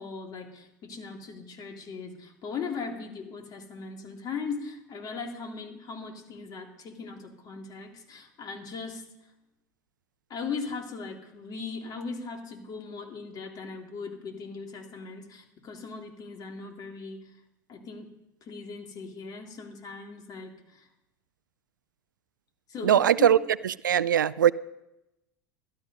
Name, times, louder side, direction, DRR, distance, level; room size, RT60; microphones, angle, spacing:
voice 1, 0.0-9.0 10.3-17.3 17.7-18.1 18.4-20.9 22.7-23.3, left 5 dB, 40° left, 3 dB, 2.9 m, -39 dB
voice 2, 22.8-23.4 23.6-24.5, right 10 dB, 80° right, 20 dB, 0.4 m, -21 dB
12.5 x 12.0 x 5.4 m, 0.91 s
figure-of-eight pair, 80°, 10 cm